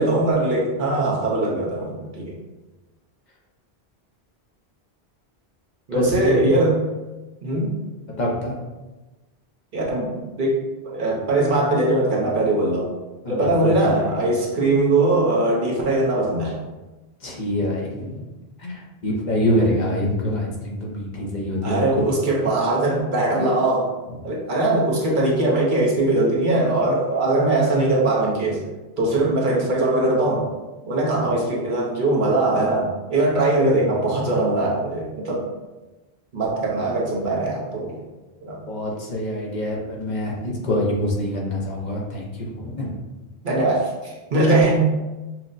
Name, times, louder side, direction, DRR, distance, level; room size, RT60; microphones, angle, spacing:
voice 1, 0.0-2.3 5.9-6.8 7.4-7.8 9.7-12.9 13.3-16.6 21.6-23.9 24.2-28.6 29.0-30.5 30.9-35.4 36.3-38.0 38.4-38.6 43.4-44.9, right 2 dB, 55° right, -3 dB, 0.8 m, -21 dB
voice 2, 5.9-6.5 8.2-8.5 13.2-14.1 17.2-18.2 18.6-21.8 38.7-42.9, left 1 dB, 50° left, -2 dB, 0.7 m, -25 dB
5.8 x 2.0 x 2.6 m, 1.1 s
omnidirectional pair, 1.1 m